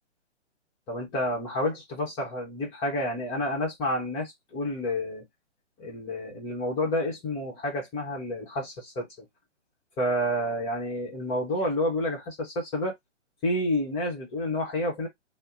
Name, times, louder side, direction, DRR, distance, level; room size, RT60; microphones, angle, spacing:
voice 1, 0.9-5.2 5.8-9.1 10.0-12.9 13.4-15.1, left 1 dB, 15° left, 0.9 m, -29 dB
2.6 x 2.1 x 3.5 m
hypercardioid pair, 140°, 36 cm